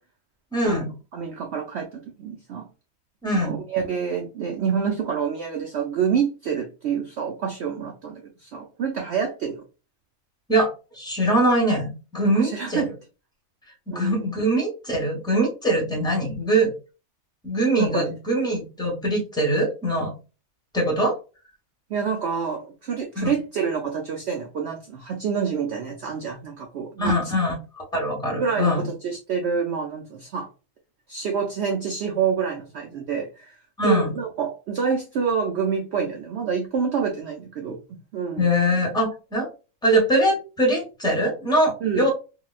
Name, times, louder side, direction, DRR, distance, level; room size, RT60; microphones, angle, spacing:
voice 1, 0.5-0.9 3.2-3.5 10.5-12.8 13.9-16.7 17.4-20.1 20.7-21.2 23.2-23.3 27.0-28.8 33.8-34.1 38.4-39.5 39.8-42.1, right 1 dB, 5° left, -1 dB, 0.7 m, -22 dB
voice 2, 1.1-2.7 3.3-9.6 12.3-12.9 13.9-14.3 17.8-18.1 21.9-27.2 28.4-30.5 31.1-33.6 33.8-38.4 41.8-42.0, right 6 dB, 65° right, 2 dB, 0.6 m, -27 dB
3.7 x 2.2 x 2.4 m, 0.32 s
omnidirectional pair, 1.6 m